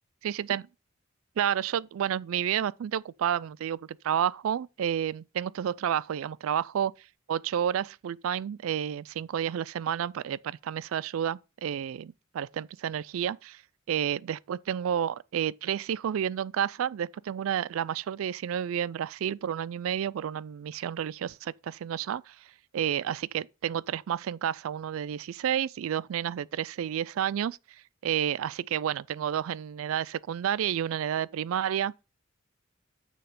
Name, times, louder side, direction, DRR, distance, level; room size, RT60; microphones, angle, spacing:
voice 1, 0.2-0.7 1.4-6.9 7.3-13.6 13.9-22.4 22.7-27.6 28.0-31.9, right 9 dB, 75° right, 0.3 m, -30 dB
6.7 x 6.2 x 5.2 m
head